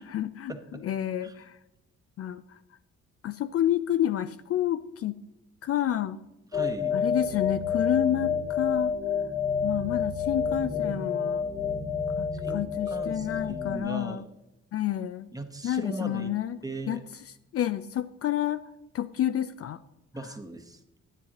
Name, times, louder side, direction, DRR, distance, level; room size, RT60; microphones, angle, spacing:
voice 1, 0.0-0.5 0.8-1.6 2.2-2.6 3.2-5.1 5.6-6.2 6.9-8.9 9.6-11.5 12.2-14.2 14.7-15.3 15.6-16.6 16.9-17.0 17.3-18.6 18.9-19.8, left 11 dB, 50° left, 12 dB, 0.4 m, -29 dB
sound 1, 6.5-13.8, left 6 dB, 25° left, 0.9 m, -29 dB
voice 2, 6.5-7.0 12.3-14.3 15.3-16.3 16.6-17.0 20.1-20.8, right 2 dB, 10° right, 5 dB, 1.0 m, -38 dB
9.8 x 9.8 x 2.9 m, 0.95 s
cardioid pair, 90°, 30 cm